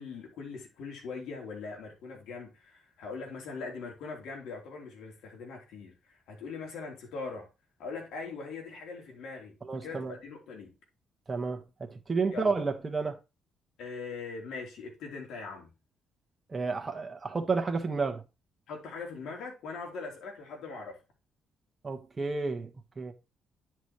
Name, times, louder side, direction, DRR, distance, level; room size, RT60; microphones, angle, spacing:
voice 1, 0.0-7.5 7.8-9.6 9.8-10.7 12.3-12.6 13.8-15.7 18.7-21.0, left 4 dB, 85° left, 3.7 m, -41 dB
voice 2, 9.6-10.1 11.3-13.2 16.5-18.2 21.8-22.7 23.0-23.1, right 4 dB, 25° right, 1.4 m, -31 dB
10.0 x 6.2 x 3.2 m
cardioid pair, 90°, 0 cm